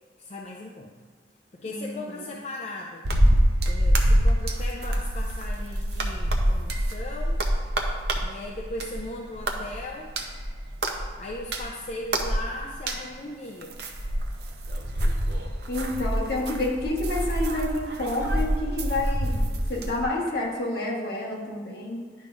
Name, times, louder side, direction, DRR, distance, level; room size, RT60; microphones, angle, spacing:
voice 1, 0.2-0.9 1.5-3.1 3.7-7.4 8.2-10.1 11.2-13.8, left 1 dB, 40° left, -1 dB, 0.4 m, -38 dB
voice 2, 1.6-2.0 15.7-19.4 19.7-22.0, left 2 dB, 60° left, -2 dB, 1.3 m, -29 dB
sound 1, 3.1-9.1 9.4-13.1 13.6-20.1, equal, 65° right, 0.7 m, -26 dB
10.5 x 4.9 x 2.4 m, 1.4 s
head